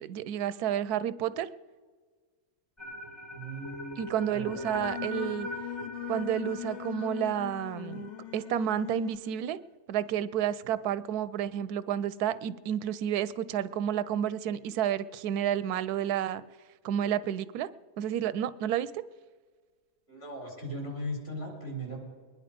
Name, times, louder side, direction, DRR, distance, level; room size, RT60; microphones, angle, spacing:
voice 1, 0.0-1.5 4.0-5.5 6.1-9.6 9.9-16.4 16.8-17.7 18.0-19.0, right 10 dB, 85° right, 16 dB, 1.1 m, -30 dB
sound 1, 2.8-8.9, equal, 20° left, 1.3 m, -42 dB
voice 2, 3.3-4.9 20.1-22.0, equal, 40° left, 0 dB, 4.4 m, -39 dB
Singing, 4.5-9.3, left 14 dB, 60° left, 0.7 m, -40 dB
22.5 x 10.5 x 5.1 m, 1.5 s
omnidirectional pair, 1.6 m